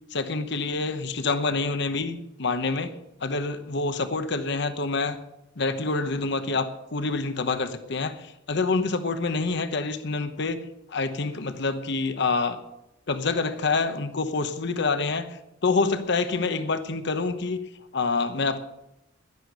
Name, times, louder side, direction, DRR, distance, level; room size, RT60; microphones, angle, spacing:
voice 1, 0.1-2.9 3.2-5.2 5.6-12.6 13.1-17.6 17.9-18.6, left 3 dB, 60° left, 10 dB, 1.0 m, -27 dB
11.5 x 11.0 x 6.7 m, 0.87 s
head